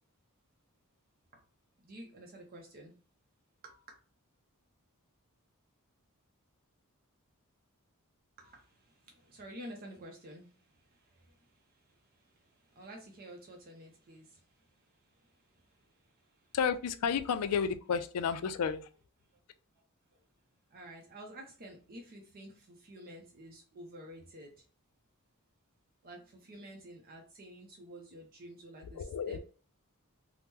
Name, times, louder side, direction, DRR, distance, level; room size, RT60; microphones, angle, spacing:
voice 1, 1.9-2.9 3.6-3.8 8.4-8.6 9.1-10.5 12.8-14.3 20.7-24.6 26.0-29.4, right 1 dB, 40° right, 0.5 m, -49 dB
voice 2, 16.5-18.9 29.0-29.4, left 6 dB, 85° left, 0.3 m, -31 dB
2.8 x 2.0 x 3.5 m
head